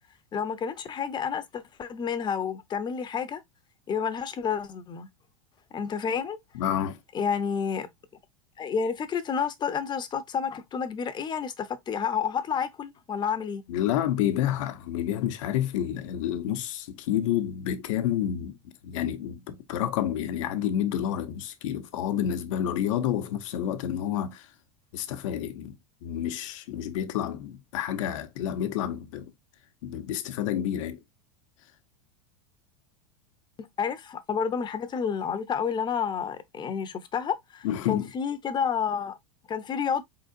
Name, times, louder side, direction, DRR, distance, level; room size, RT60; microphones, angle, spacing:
voice 1, 0.3-3.4 3.9-5.1 5.7-6.4 7.1-7.9 8.6-13.6 33.8-39.2 39.5-40.0, left 7 dB, 25° left, 0.8 m, -30 dB
voice 2, 6.5-7.0 13.7-18.6 18.8-24.5 24.9-25.7 26.0-29.3 29.8-31.0 37.6-38.1, left 10 dB, 70° left, 0.9 m, -29 dB
4.6 x 3.9 x 2.6 m
supercardioid pair, 115°, 17 cm